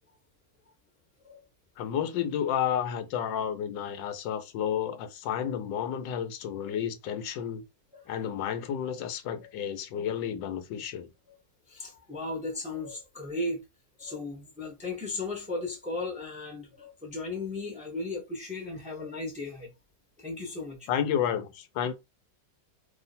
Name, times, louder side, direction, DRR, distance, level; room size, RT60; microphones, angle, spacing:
voice 1, 1.8-7.6 8.1-11.1 20.9-21.9, left 9 dB, 85° left, 1.3 m, -31 dB
voice 2, 11.7-13.6 14.0-19.7 20.2-20.9, left 2 dB, 5° right, 0.7 m, -36 dB
3.0 x 2.6 x 4.1 m
omnidirectional pair, 2.0 m